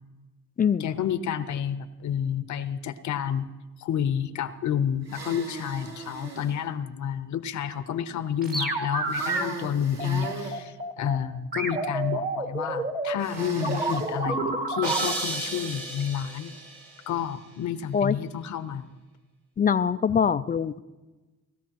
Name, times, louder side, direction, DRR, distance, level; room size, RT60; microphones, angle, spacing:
voice 1, 0.8-3.5 3.8-16.5 17.1-18.9, left 8 dB, 70° left, 11 dB, 0.8 m, -30 dB
sound 1, 5.0-6.5 9.1-10.6 13.2-14.1, right 2 dB, 60° right, 3.4 m, -37 dB
sound 2, 8.4-9.4 10.0-11.2 11.5-15.1, right 2 dB, 30° right, 1.6 m, -29 dB
sound 3, 14.8-16.9, right 2 dB, 85° right, 3.4 m, -33 dB
voice 2, 19.6-20.8, left 7 dB, 30° left, 14 dB, 0.4 m, -23 dB
19.5 x 13.0 x 3.0 m, 1.2 s
cardioid pair, 90°, 30 cm